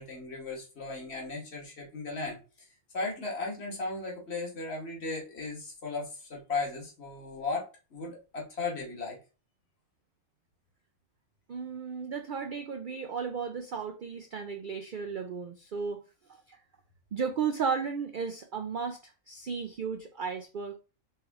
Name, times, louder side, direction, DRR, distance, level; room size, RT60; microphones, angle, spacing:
voice 1, 0.0-2.7 2.9-9.2, left 3 dB, 50° left, -1 dB, 1.8 m, -36 dB
voice 2, 11.5-16.0 16.5-16.6 17.1-20.8, right 6 dB, 60° right, 6 dB, 0.5 m, -34 dB
4.3 x 3.3 x 3.5 m, 0.32 s
omnidirectional pair, 1.4 m